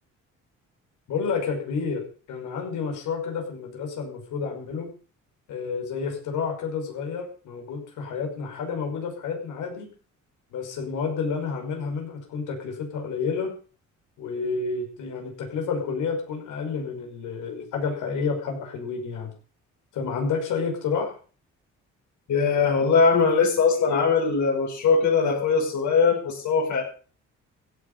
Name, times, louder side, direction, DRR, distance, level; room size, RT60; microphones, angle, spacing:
voice 1, 1.1-2.0 2.3-4.9 5.5-9.9 10.5-13.5 14.2-19.3 19.9-21.1, left 5 dB, 85° left, 3 dB, 5.7 m, -30 dB
voice 2, 22.3-26.8, left 5 dB, 70° left, 1 dB, 6.4 m, -21 dB
16.0 x 9.6 x 7.1 m, 0.40 s
cardioid pair, 90°, 30 cm